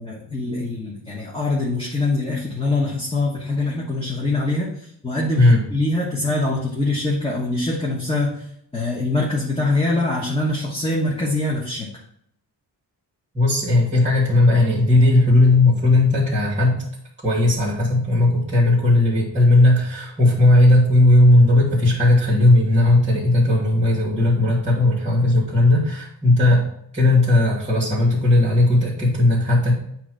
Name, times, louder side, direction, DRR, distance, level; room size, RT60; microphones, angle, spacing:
voice 1, 0.0-8.5 8.7-11.9, left 2 dB, 15° left, -3 dB, 1.2 m, -24 dB
voice 2, 13.3-16.8 17.2-26.7 26.9-29.7, left 2 dB, 15° right, -6 dB, 2.3 m, -16 dB
8.9 x 3.0 x 6.3 m, 0.72 s
wide cardioid pair, 135°, 42 cm